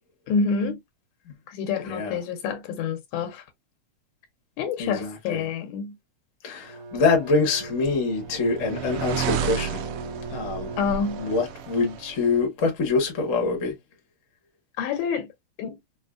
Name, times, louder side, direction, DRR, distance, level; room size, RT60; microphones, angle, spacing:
voice 1, 0.3-0.8 1.5-3.4 4.6-6.0 10.8-11.2 14.8-15.3 15.6-15.8, left 5 dB, 80° left, 1.9 m, -27 dB
voice 2, 1.8-2.2 4.8-5.5 6.4-9.9 10.3-10.7 11.2-13.8, left 4 dB, 60° left, 0.8 m, -25 dB
Bowed string instrument, 6.6-12.0, right 3 dB, 50° right, 2.2 m, -40 dB
sound 1, 7.5-12.4, right 7 dB, 75° right, 1.7 m, -32 dB
5.1 x 2.2 x 2.3 m
omnidirectional pair, 3.5 m